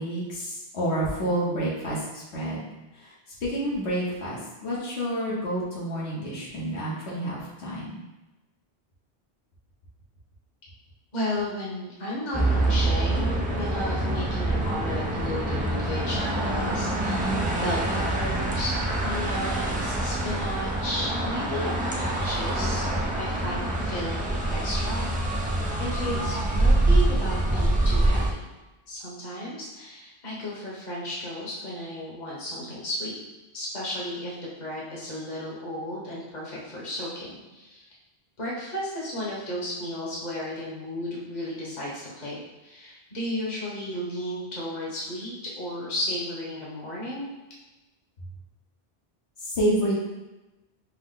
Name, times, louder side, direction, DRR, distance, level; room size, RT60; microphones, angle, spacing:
voice 1, 0.0-2.7 2.9-3.1 3.4-8.0 49.4-49.9, right 1 dB, 80° left, -6 dB, 1.3 m, -29 dB
voice 2, 11.1-18.8 19.0-22.9 23.1-25.4 25.8-28.5 28.9-33.2 33.5-37.9 38.4-47.3, left 1 dB, 45° left, -5 dB, 1.3 m, -34 dB
sound 1, 12.3-28.3, right 1 dB, 10° right, 0.4 m, -25 dB
6.0 x 2.1 x 3.8 m, 1.0 s
omnidirectional pair, 1.1 m